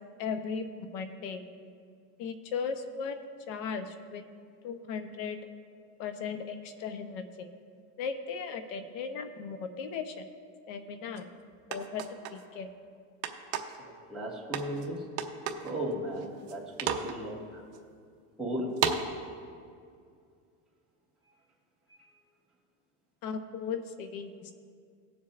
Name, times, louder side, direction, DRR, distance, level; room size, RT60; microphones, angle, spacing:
voice 1, 0.2-1.5 2.2-3.2 3.5-4.2 4.6-5.4 6.0-7.5 8.0-10.2 10.7-11.2 11.7-12.7 23.2-24.5, left 5 dB, 80° left, 8 dB, 0.9 m, -37 dB
sound 1, 11.2-11.3 11.7-12.4 13.2-13.8 14.5-14.9 15.2-15.7 16.2-16.5 16.8-17.2 17.7-17.8 18.8-19.0, right 8 dB, 40° right, 0.8 m, -31 dB
voice 2, 13.8-15.1 15.6-17.6 18.4-18.9 21.9-22.0, equal, ahead, -7 dB, 1.7 m, -36 dB
19.5 x 7.2 x 2.5 m, 2.2 s
cardioid pair, 175°, 37 cm